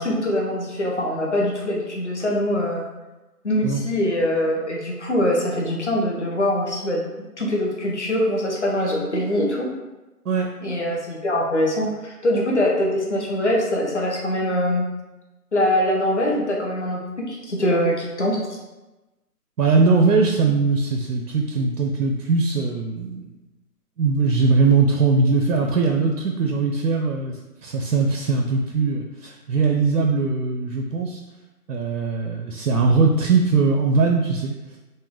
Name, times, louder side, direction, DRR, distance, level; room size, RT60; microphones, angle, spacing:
voice 1, 0.0-2.8 3.4-7.1 7.4-9.7 10.6-14.9 15.5-18.4, left 1 dB, 50° left, -2 dB, 0.7 m, -23 dB
voice 2, 19.6-23.3 24.0-31.2 31.7-34.5, right 4 dB, 75° right, 2 dB, 0.6 m, -20 dB
3.3 x 2.1 x 3.6 m, 1.1 s
figure-of-eight pair, 175°, 47 cm